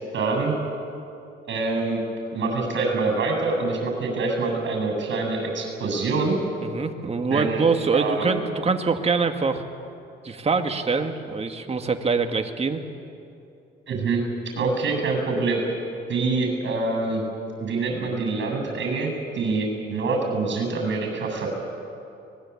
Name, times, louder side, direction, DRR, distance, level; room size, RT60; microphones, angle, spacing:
voice 1, 0.1-0.6 1.5-2.0 2.3-6.4 7.3-7.6 7.9-8.3 13.9-14.2 14.6-15.6 16.1-17.2 17.6-21.5, right 3 dB, 65° right, 3 dB, 8.0 m, -25 dB
voice 2, 6.6-9.6 10.2-12.8, right 4 dB, 30° right, 6 dB, 1.9 m, -24 dB
24.0 x 20.0 x 8.6 m, 2.7 s
cardioid pair, 90°, 20 cm